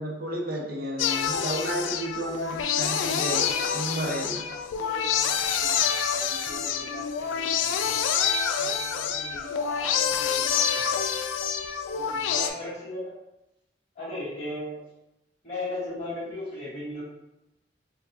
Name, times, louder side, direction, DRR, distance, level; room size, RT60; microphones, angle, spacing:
voice 1, 0.0-4.4, right 1 dB, 50° right, -1 dB, 0.7 m, -32 dB
sound 1, 1.0-12.5, left 7 dB, 85° left, 0.3 m, -27 dB
voice 2, 4.5-10.9 11.9-12.8 14.0-14.2, right 1 dB, 25° right, -7 dB, 1.0 m, -45 dB
voice 3, 12.3-13.1 13.9-14.8 15.4-17.0, left 2 dB, 35° left, -11 dB, 1.3 m, -34 dB
4.6 x 2.2 x 2.7 m, 0.91 s
head